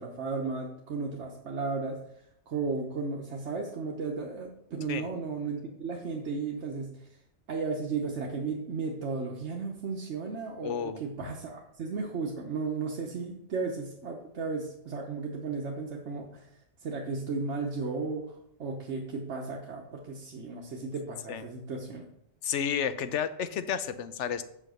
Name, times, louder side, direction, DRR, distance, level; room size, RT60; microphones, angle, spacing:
voice 1, 0.0-2.0 2.5-7.1 7.5-16.5 16.8-22.0, right 4 dB, 75° right, 0 dB, 1.3 m, -34 dB
voice 2, 10.6-11.0 21.3-21.4 22.4-24.4, left 8 dB, 85° left, 12 dB, 1.0 m, -31 dB
7.5 x 5.6 x 6.3 m, 0.77 s
omnidirectional pair, 1.2 m